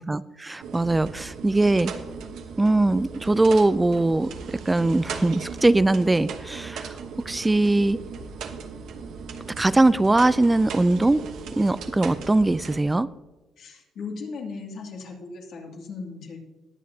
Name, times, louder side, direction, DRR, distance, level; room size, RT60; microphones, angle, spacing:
voice 1, 0.0-1.9 2.6-4.3 4.7-6.9 7.3-8.0 9.6-11.2 11.6-13.1, right 2 dB, 15° right, 16 dB, 0.3 m, -21 dB
sound 1, 0.6-12.8, right 5 dB, 80° right, 1.1 m, -37 dB
voice 2, 13.6-16.4, left 4 dB, 75° left, 0 dB, 2.5 m, -37 dB
20.5 x 7.3 x 2.8 m, 1.2 s
cardioid pair, 90°, 0 cm